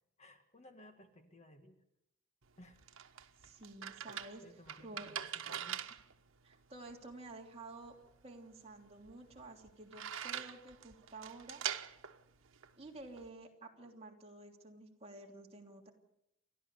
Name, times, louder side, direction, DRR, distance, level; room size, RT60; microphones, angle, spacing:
voice 1, 0.2-1.8 2.6-2.8 4.4-5.8, left 1 dB, 35° left, 6 dB, 1.8 m, -59 dB
sound 1, 2.4-13.3, right 9 dB, 90° right, 1.2 m, -45 dB
voice 2, 3.4-4.4 4.8-5.1 6.4-8.0 8.2-11.6 12.8-15.9, right 2 dB, 30° right, 0 dB, 3.2 m, -51 dB
29.5 x 13.0 x 6.9 m, 0.79 s
head